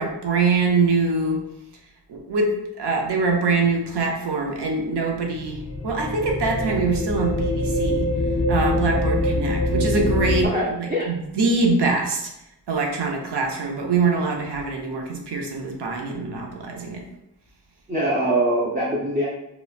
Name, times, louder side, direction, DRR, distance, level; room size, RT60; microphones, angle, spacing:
voice 1, 0.0-1.4 2.1-8.1 8.5-12.3 12.7-17.0, right 3 dB, 85° right, 1 dB, 0.6 m, -24 dB
sound 1, 5.3-10.5, left 1 dB, 40° left, 0.4 m, -24 dB
voice 2, 10.4-11.1 17.9-19.3, right 1 dB, 25° right, -6 dB, 0.4 m, -23 dB
2.8 x 2.1 x 2.4 m, 0.86 s
wide cardioid pair, 85°, 39 cm